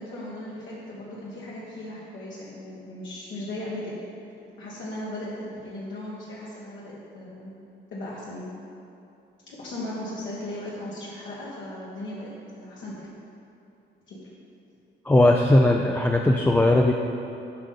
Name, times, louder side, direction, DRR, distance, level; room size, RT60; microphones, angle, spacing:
voice 1, 0.0-4.0 4.6-7.5 7.9-8.5 9.5-13.1 14.1-14.2, left 1 dB, 70° left, -7 dB, 1.4 m, -37 dB
voice 2, 15.0-16.9, left 1 dB, 10° left, 1 dB, 0.4 m, -18 dB
8.3 x 5.2 x 3.9 m, 2.8 s
cardioid pair, 90°, 20 cm